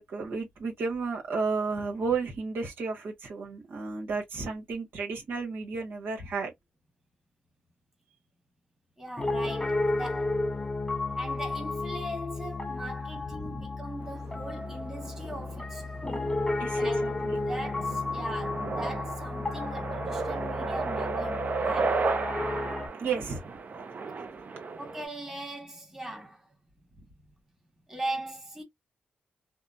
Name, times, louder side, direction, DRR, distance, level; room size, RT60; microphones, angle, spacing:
voice 1, 0.0-6.5 13.3-13.7 16.6-17.4 23.0-23.5, right 4 dB, 85° right, 1.2 m, -33 dB
voice 2, 9.0-10.4 11.1-16.4 16.8-22.0 24.8-26.4 27.9-28.6, right 1 dB, 10° right, 1.4 m, -39 dB
Piano, 9.2-22.9, left 2 dB, 20° left, 0.7 m, -32 dB
sound 1, 14.0-25.1, right 4 dB, 45° right, 0.5 m, -34 dB
2.9 x 2.1 x 2.4 m
cardioid pair, 80°, 4 cm